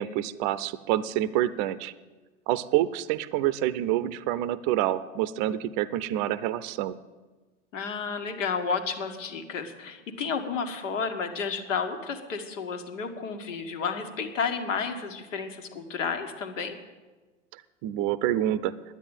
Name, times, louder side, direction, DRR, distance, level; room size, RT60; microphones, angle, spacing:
voice 1, 0.0-1.9 2.5-6.9 17.8-18.7, right 13 dB, 45° right, 16 dB, 0.6 m, -27 dB
voice 2, 7.7-16.8, left 5 dB, 75° left, 6 dB, 1.8 m, -31 dB
10.5 x 9.6 x 9.0 m, 1.3 s
hypercardioid pair, 105°, 38 cm